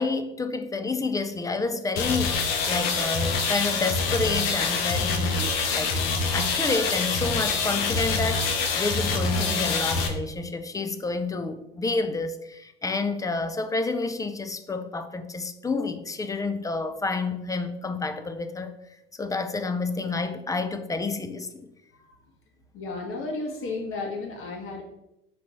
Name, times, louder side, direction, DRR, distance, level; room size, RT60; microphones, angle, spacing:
voice 1, 0.0-5.9 6.3-18.7 19.2-21.7, left 3 dB, 10° left, 0.4 m, -29 dB
sound 1, 2.0-10.1, left 4 dB, 70° left, 0.8 m, -26 dB
voice 2, 22.7-24.8, left 3 dB, 45° left, 1.4 m, -33 dB
4.5 x 2.9 x 4.0 m
hypercardioid pair, 70°, 30 cm